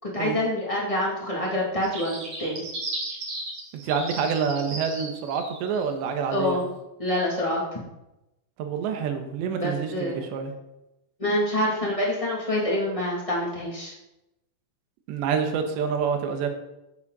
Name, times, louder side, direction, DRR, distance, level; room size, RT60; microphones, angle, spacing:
voice 1, 0.0-2.6 6.3-6.6 7.0-7.8 9.5-10.2 11.2-13.9, left 1 dB, 15° left, -4 dB, 1.1 m, -26 dB
sound 1, 1.8-5.9, right 2 dB, 35° right, 3.3 m, -35 dB
voice 2, 3.8-6.6 8.6-10.5 15.1-16.5, right 6 dB, 70° right, 5 dB, 3.2 m, -27 dB
14.5 x 8.0 x 4.2 m, 0.92 s
omnidirectional pair, 5.8 m